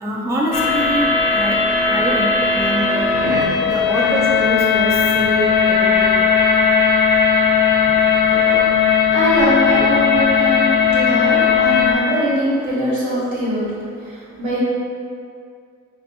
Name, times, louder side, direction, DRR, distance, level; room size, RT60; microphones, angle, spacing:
voice 1, 0.0-1.1 1.3-1.6 1.9-3.1 3.6-4.9 5.1-6.1, right 1 dB, 10° right, -3 dB, 0.3 m, -24 dB
sound 1, 0.5-11.9, left 6 dB, 85° left, 0.5 m, -17 dB
voice 2, 9.1-13.7 14.0-14.6, equal, 75° right, -7 dB, 1.0 m, -22 dB
2.5 x 2.4 x 2.6 m, 2.3 s
cardioid pair, 90°, 30 cm